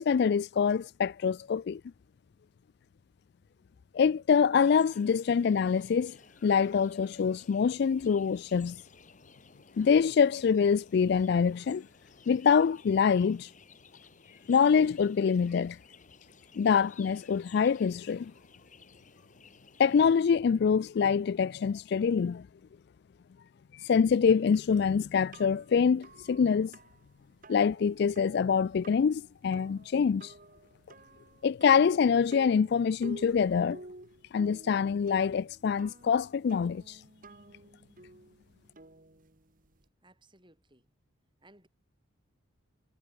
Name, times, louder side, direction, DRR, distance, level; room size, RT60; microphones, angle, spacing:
voice 1, 0.0-1.8 3.9-6.1 6.4-8.8 9.8-11.9 12.3-13.5 14.5-15.8 16.6-18.3 19.8-22.5 23.8-26.7 27.5-30.3 31.4-33.8 34.3-36.8, left 6 dB, 55° left, 0.3 m, -25 dB
sound 1, 4.6-20.0, left 5 dB, 40° left, 5.7 m, -57 dB
sound 2, 24.5-39.9, right 2 dB, 40° right, 1.7 m, -52 dB
voice 2, 40.0-40.9 41.4-41.7, right 2 dB, 25° right, 5.6 m, -60 dB
head